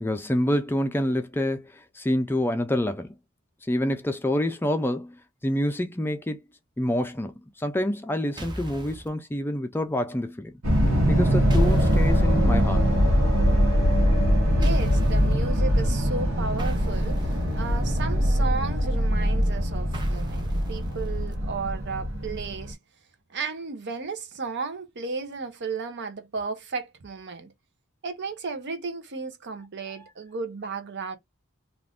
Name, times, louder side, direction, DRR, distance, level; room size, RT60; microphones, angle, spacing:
voice 1, 0.0-3.1 3.7-6.4 6.8-10.5 11.1-12.8, left 1 dB, 10° left, 0.4 m, -27 dB
sound 1, 8.4-9.1 11.5-12.2 14.6-15.3 16.6-18.0 19.9-21.3, right 1 dB, 20° right, 0.7 m, -38 dB
sound 2, 10.6-22.7, equal, 80° right, 0.9 m, -22 dB
voice 2, 14.6-22.8 23.3-27.5 28.0-31.2, right 4 dB, 55° right, 0.7 m, -34 dB
2.5 x 2.4 x 3.4 m
head